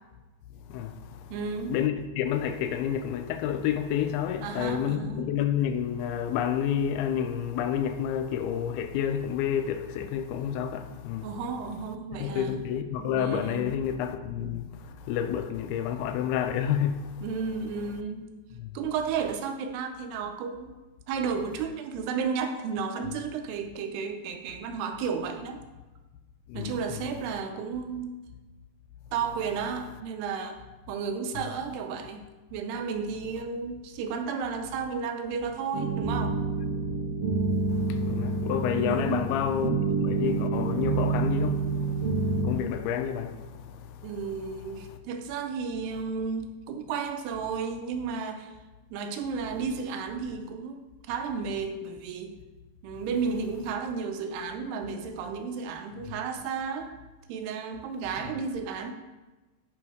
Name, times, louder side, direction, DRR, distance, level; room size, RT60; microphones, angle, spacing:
voice 1, 0.7-1.3 1.7-11.3 12.1-17.3 18.6-18.8 26.5-27.1 36.8-36.9 37.5-39.7 40.0-44.1, left 9 dB, 85° left, 2.4 m, -30 dB
voice 2, 1.3-1.8 4.4-5.4 11.2-12.6 13.0-13.8 14.4-14.6 17.2-18.3 18.7-20.7 21.1-25.6 26.5-28.2 29.1-32.2 32.5-36.4 38.7-39.2 44.0-48.5 48.9-52.4 52.8-56.9 57.3-58.9, right 5 dB, 90° right, 2.8 m, -33 dB
sound 1, 35.7-42.5, right 4 dB, 65° right, 1.8 m, -28 dB
8.7 x 4.3 x 4.9 m
omnidirectional pair, 4.6 m